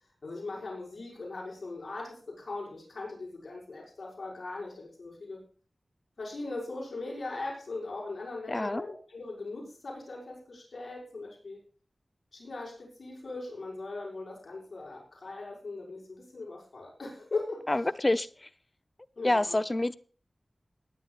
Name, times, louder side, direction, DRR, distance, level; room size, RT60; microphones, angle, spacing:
voice 1, 0.2-5.4 6.2-11.6 12.3-17.7 19.2-19.6, left 3 dB, 70° left, -3 dB, 5.9 m, -39 dB
voice 2, 8.5-8.8 17.7-18.5 19.2-20.0, left 2 dB, 30° left, 14 dB, 0.7 m, -27 dB
19.5 x 10.0 x 2.5 m, 0.40 s
wide cardioid pair, 60°, 0 cm